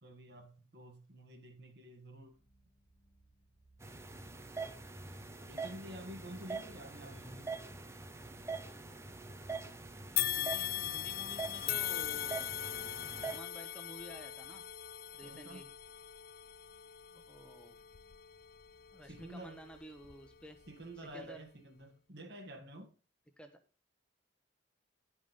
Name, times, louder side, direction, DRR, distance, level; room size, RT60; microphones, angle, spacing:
voice 1, 0.0-2.4 5.5-7.6 15.2-15.6 19.0-19.6 20.7-22.9, right 1 dB, 60° right, 1.8 m, -50 dB
sound 1, 3.8-13.4, right 4 dB, 15° right, 0.7 m, -44 dB
sound 2, 10.2-19.5 20.0-20.1 21.1-21.2, left 12 dB, 50° left, 0.5 m, -40 dB
voice 2, 10.4-12.6 13.2-14.6 15.1-15.7 17.1-17.8 18.9-20.6 21.1-21.4 23.4-23.6, equal, 5° left, 1.0 m, -52 dB
sound 3, 10.6-21.0, equal, 25° left, 1.2 m, -71 dB
11.0 x 5.4 x 5.2 m
head